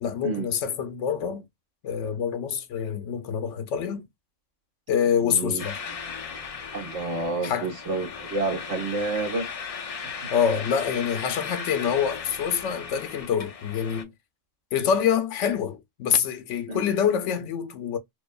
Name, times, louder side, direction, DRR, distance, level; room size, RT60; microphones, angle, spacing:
voice 1, 0.0-1.4 1.8-4.0 4.9-5.8 7.4-7.7 10.3-14.1 14.7-18.0, left 8 dB, 70° left, 0.9 m, -26 dB
voice 2, 5.2-5.6 6.7-9.5 10.2-10.3 16.7-16.9, right 3 dB, 70° right, 1.7 m, -29 dB
sound 1, 5.6-14.0, left 6 dB, 55° left, 0.4 m, -37 dB
4.5 x 2.2 x 2.3 m
omnidirectional pair, 1.3 m